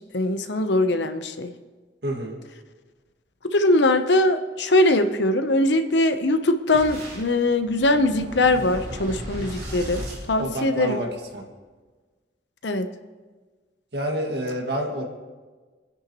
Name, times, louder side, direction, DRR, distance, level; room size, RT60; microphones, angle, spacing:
voice 1, 0.1-1.5 3.4-11.0 12.6-12.9, left 2 dB, 75° left, 8 dB, 0.9 m, -21 dB
voice 2, 2.0-2.4 10.4-11.4 13.9-15.0, right 1 dB, 65° right, 1 dB, 2.1 m, -28 dB
Boom, 6.7-11.1, equal, 40° right, 3.8 m, -36 dB
26.5 x 10.0 x 3.1 m, 1.4 s
head